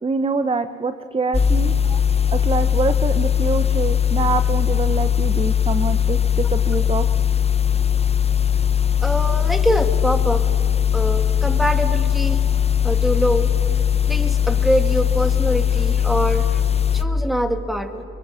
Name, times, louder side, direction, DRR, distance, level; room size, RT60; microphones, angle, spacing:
voice 1, 0.0-1.7 2.3-7.1, right 4 dB, 20° right, 10 dB, 0.8 m, -25 dB
sound 1, 1.3-17.0, left 9 dB, 20° left, 0.9 m, -19 dB
voice 2, 9.0-10.5 10.9-12.4 12.8-13.5 14.1-16.6 16.9-18.0, equal, ahead, 7 dB, 1.8 m, -24 dB
24.0 x 23.0 x 7.5 m, 2.8 s
cardioid pair, 90°, 30 cm